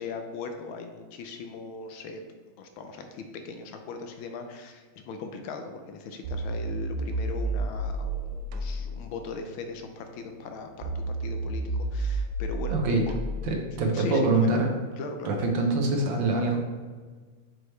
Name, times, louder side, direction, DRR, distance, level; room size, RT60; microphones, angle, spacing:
voice 1, 0.0-2.2 2.6-10.7 10.9-12.8 13.0-13.1 13.9-14.7 14.9-15.4, left 4 dB, 75° left, 6 dB, 1.4 m, -39 dB
sound 1, 6.2-13.5, right 2 dB, 85° right, 1.5 m, -32 dB
voice 2, 12.7-13.0 13.4-14.7 15.2-16.6, right 2 dB, 65° right, 2 dB, 1.4 m, -24 dB
6.3 x 4.6 x 3.2 m, 1.4 s
omnidirectional pair, 2.3 m